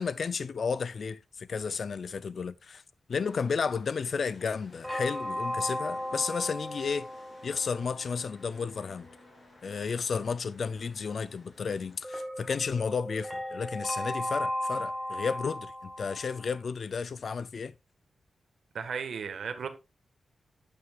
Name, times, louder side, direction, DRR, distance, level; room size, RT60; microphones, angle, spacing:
voice 1, 0.0-2.8 3.1-7.1 7.4-9.1 9.6-17.7, left 5 dB, 50° left, 0.4 m, -32 dB
sound 1, 3.1-12.0, left 2 dB, 35° left, 3.3 m, -56 dB
sound 2, 4.8-8.5 12.0-16.6, left 1 dB, ahead, 1.7 m, -36 dB
voice 2, 18.7-19.7, right 6 dB, 80° right, 1.4 m, -35 dB
9.8 x 9.2 x 2.4 m
wide cardioid pair, 175°, 0 cm